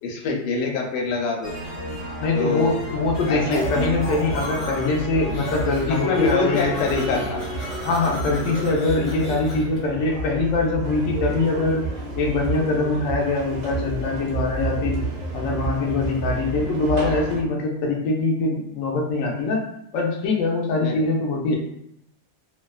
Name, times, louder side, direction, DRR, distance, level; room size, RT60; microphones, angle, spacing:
voice 1, 0.0-1.5 2.3-2.8 3.3-3.6 5.9-7.4 20.8-21.0 21.5-21.6, left 4 dB, 90° left, 0 dB, 1.2 m, -25 dB
sound 1, 1.4-10.0, left 1 dB, 50° left, 0.5 m, -34 dB
voice 2, 2.2-6.9 7.8-11.8 12.2-15.0 15.3-19.6 19.9-21.5, left 3 dB, 70° left, -1 dB, 0.9 m, -23 dB
sound 2, 3.0-17.4, right 3 dB, 70° right, 0.7 m, -31 dB
sound 3, 3.5-5.0 5.3-6.0 6.2-9.8, right 1 dB, 30° left, 0.9 m, -35 dB
2.7 x 2.2 x 2.3 m, 0.75 s
omnidirectional pair, 1.7 m